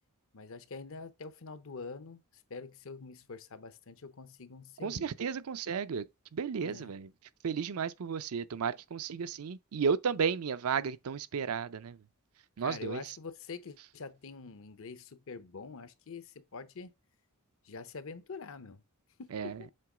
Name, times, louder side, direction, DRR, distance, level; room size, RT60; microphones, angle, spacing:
voice 1, 0.3-5.1 6.6-7.0 12.6-16.9 17.6-18.8 19.2-19.7, left 4 dB, 65° left, 0.8 m, -45 dB
voice 2, 4.8-6.0 6.3-7.1 7.4-12.0 12.6-13.0 19.3-19.6, right 6 dB, 75° right, 0.5 m, -33 dB
7.7 x 3.0 x 4.9 m
head